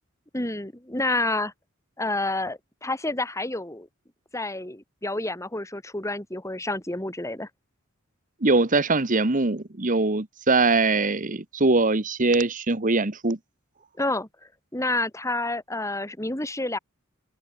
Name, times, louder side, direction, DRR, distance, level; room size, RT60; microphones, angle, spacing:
voice 1, 0.3-1.5 2.0-3.9 4.3-7.5 14.0-14.3 14.7-16.8, left 2 dB, 15° left, 3.5 m, -29 dB
voice 2, 8.4-13.4, right 3 dB, 40° right, 1.4 m, -22 dB
head